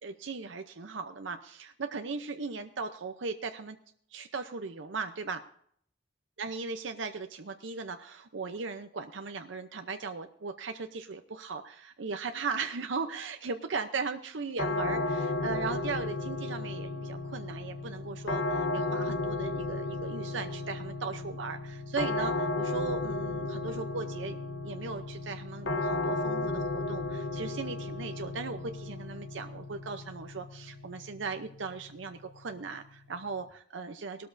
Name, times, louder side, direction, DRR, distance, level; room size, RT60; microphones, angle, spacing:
voice 1, 0.0-3.8 4.1-5.4 6.4-24.4 24.6-34.3, right 4 dB, 85° right, 7 dB, 0.7 m, -38 dB
sound 1, 14.6-33.5, left 2 dB, 75° left, 1.0 m, -34 dB
19.0 x 13.0 x 2.7 m, 0.64 s
head